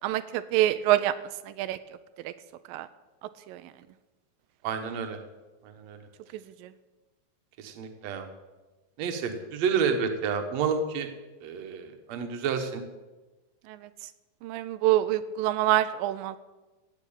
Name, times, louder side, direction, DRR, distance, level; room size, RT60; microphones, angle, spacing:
voice 1, 0.0-1.1 1.4-1.8 2.2-2.3 2.7-2.9 3.5-3.6 6.6-6.7 13.7-13.8 14.4-16.4, right 14 dB, 90° right, 12 dB, 2.3 m, -26 dB
voice 2, 4.6-5.2 5.6-6.1 7.6-8.3 9.0-11.1 11.4-12.8, right 6 dB, 60° right, 6 dB, 2.2 m, -30 dB
17.5 x 5.9 x 8.8 m, 1.1 s
omnidirectional pair, 3.9 m